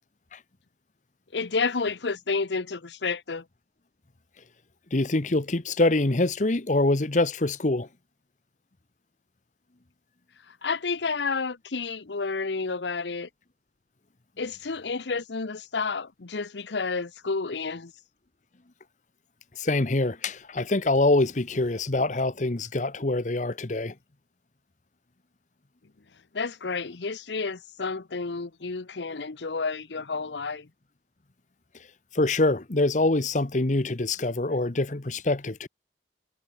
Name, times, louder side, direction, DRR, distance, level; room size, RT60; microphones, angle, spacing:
voice 1, 1.3-3.4 10.5-13.3 14.4-17.9 26.3-30.7, left 4 dB, 90° left, 0.9 m, -30 dB
voice 2, 4.9-7.9 19.6-23.9 32.1-35.7, left 2 dB, 45° left, 1.0 m, -25 dB
head